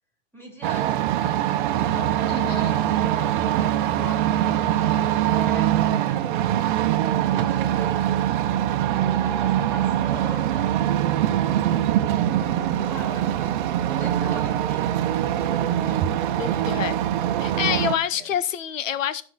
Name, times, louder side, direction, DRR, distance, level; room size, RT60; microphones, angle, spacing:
voice 1, 0.3-4.9 5.3-8.0 8.7-11.8 12.8-13.6 13.9-16.7 17.6-18.3, left 1 dB, 5° left, 2.3 m, -43 dB
sound 1, 0.6-18.0, right 11 dB, 40° right, 1.0 m, -23 dB
voice 2, 2.3-2.8 16.3-16.9 17.4-19.2, left 9 dB, 80° left, 1.1 m, -27 dB
12.5 x 4.9 x 6.4 m
hypercardioid pair, 145°, 38 cm